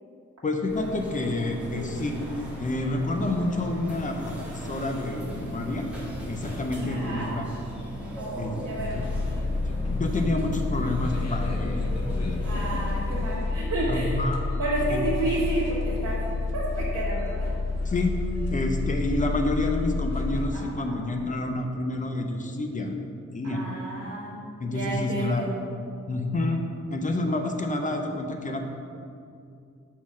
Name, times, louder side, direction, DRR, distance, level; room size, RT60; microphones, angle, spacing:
voice 1, 0.4-2.2 2.6-5.9 6.3-7.6 8.4-8.6 8.9-9.0 9.3-9.4 9.9-11.8 12.2-12.3 13.9-14.4 14.9-15.1 17.9-18.1 18.5-22.9 23.3-23.6 24.6-25.5 26.1-26.6 26.9-28.7, left 2 dB, 25° left, 4 dB, 0.5 m, -28 dB
sound 1, 0.7-13.4, equal, 5° right, 1.4 m, -38 dB
voice 2, 6.8-7.3 8.2-9.0 12.4-14.2 14.6-16.2 16.5-17.5 20.5-21.0 23.4-24.4 24.7-25.5, right 2 dB, 70° right, -9 dB, 1.4 m, -31 dB
sound 2, 8.8-20.5, left 3 dB, 60° left, 0.8 m, -29 dB
6.2 x 3.9 x 6.0 m, 2.5 s
wide cardioid pair, 175°, 30 cm